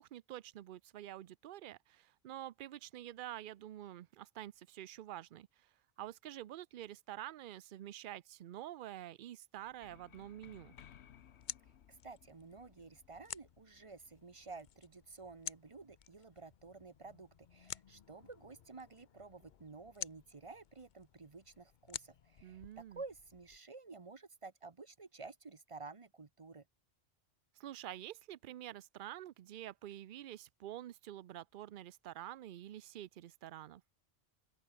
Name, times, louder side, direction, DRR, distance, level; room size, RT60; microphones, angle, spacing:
voice 1, 0.0-5.7 6.0-10.7 22.4-23.0 27.6-33.8, right 13 dB, 60° right, 0.6 m, -48 dB
sound 1, 9.6-15.2, left 9 dB, 75° left, 1.1 m, -62 dB
sound 2, 10.8-23.6, left 8 dB, 50° left, 0.7 m, -52 dB
voice 2, 11.9-26.6, right 4 dB, 30° right, 0.9 m, -52 dB
open air
omnidirectional pair, 1.1 m